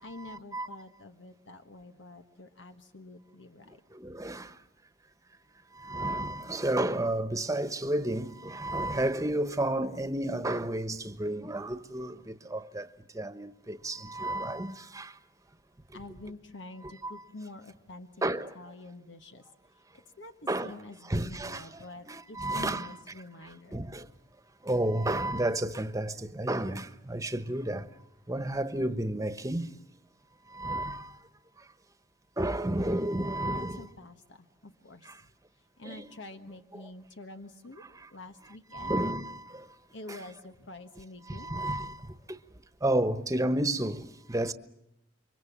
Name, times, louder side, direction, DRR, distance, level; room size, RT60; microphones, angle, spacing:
voice 1, 0.0-3.8 15.9-18.2 18.5-19.5 20.2-20.3 20.6-23.9 33.4-35.3 35.8-37.8 38.1-39.1 39.9-41.9, left 2 dB, 90° left, 1.5 m, -47 dB
voice 2, 4.0-4.4 5.9-12.1 12.5-12.8 13.2-15.0 17.0-17.1 18.2-18.5 20.5-20.7 21.1-21.6 22.1-22.9 23.7-24.0 24.7-27.8 28.3-29.7 30.6-31.0 32.4-33.8 35.9-36.0 38.7-39.4 41.3-41.9 42.8-44.0 44.3-44.5, right 1 dB, 20° right, 1.2 m, -31 dB
29.0 x 24.0 x 7.4 m
head